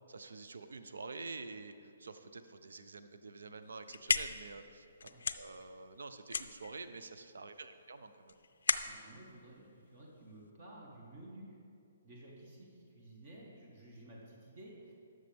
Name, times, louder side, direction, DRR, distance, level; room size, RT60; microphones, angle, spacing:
voice 1, 0.1-5.1 5.4-8.4, right 3 dB, 85° right, 9 dB, 0.6 m, -48 dB
sound 1, 3.6-10.5, left 5 dB, 80° left, 0.4 m, -38 dB
voice 2, 8.8-11.6 12.0-14.9, right 1 dB, 45° right, -3 dB, 1.6 m, -53 dB
12.5 x 6.3 x 3.5 m, 2.5 s
hypercardioid pair, 155°, 0 cm